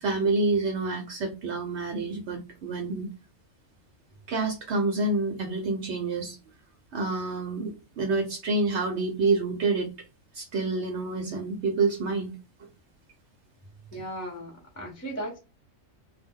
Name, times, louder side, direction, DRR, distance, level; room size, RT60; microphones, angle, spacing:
voice 1, 0.0-3.1 4.3-6.4 6.9-9.9 10.3-12.3, right 3 dB, 70° right, 3 dB, 0.8 m, -28 dB
voice 2, 13.9-15.4, right 1 dB, 15° left, 0 dB, 0.6 m, -36 dB
2.2 x 2.1 x 3.5 m, 0.30 s
omnidirectional pair, 1.3 m